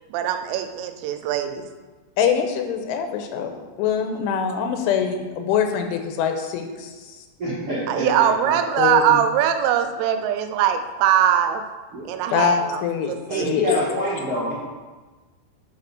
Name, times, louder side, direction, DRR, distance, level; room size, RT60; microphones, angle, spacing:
voice 1, 0.1-1.7 7.9-11.6 12.1-12.8 13.1-13.6, right 10 dB, 85° right, 7 dB, 3.0 m, -21 dB
voice 2, 2.2-3.5 3.8-6.9 8.8-9.2 12.3-12.5 12.8-13.9, left 7 dB, 85° left, 5 dB, 3.1 m, -23 dB
voice 3, 7.4-8.6 11.9-12.1 13.3-14.5, right 1 dB, 60° right, -10 dB, 1.5 m, -27 dB
7.8 x 4.8 x 6.0 m, 1.3 s
omnidirectional pair, 5.7 m